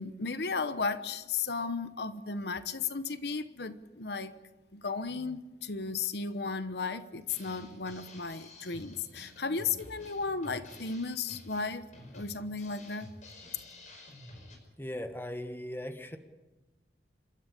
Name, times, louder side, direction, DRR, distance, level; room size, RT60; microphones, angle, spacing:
voice 1, 0.0-4.3 4.7-11.8 12.1-13.1, left 4 dB, 65° left, 12 dB, 1.0 m, -35 dB
Drum kit, 7.3-14.6, left 2 dB, 45° left, 5.3 m, -51 dB
voice 2, 14.8-16.2, left 1 dB, 15° left, 7 dB, 1.4 m, -38 dB
28.0 x 13.5 x 8.5 m, 1.2 s
head